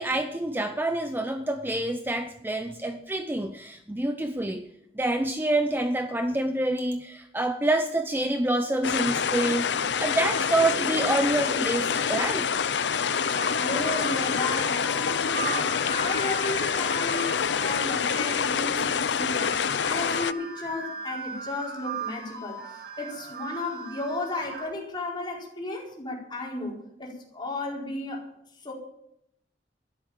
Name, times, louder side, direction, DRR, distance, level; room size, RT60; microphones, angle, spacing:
voice 1, 0.0-4.7 5.0-12.5, right 1 dB, 10° right, 7 dB, 0.7 m, -27 dB
sound 1, 8.8-20.3, left 7 dB, 70° left, 0.6 m, -26 dB
sound 2, 12.6-24.7, right 4 dB, 65° right, 6.1 m, -39 dB
voice 2, 13.6-28.3 28.6-28.7, left 2 dB, 25° left, -2 dB, 4.6 m, -34 dB
13.0 x 11.5 x 7.5 m, 0.78 s
head